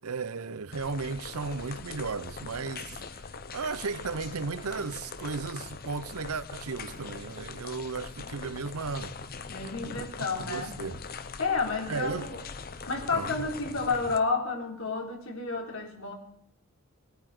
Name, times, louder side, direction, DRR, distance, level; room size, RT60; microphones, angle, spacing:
voice 1, 0.0-3.2 3.5-9.2 9.8-10.1 10.4-11.0 11.9-12.3 13.1-13.5, right 4 dB, 80° right, 0.7 m, -35 dB
sound 1, 0.7-14.2, left 5 dB, 45° left, 0.8 m, -42 dB
voice 2, 9.5-10.8 11.4-12.4 12.9-16.1, left 4 dB, 65° left, 3.9 m, -30 dB
18.5 x 9.4 x 6.7 m
head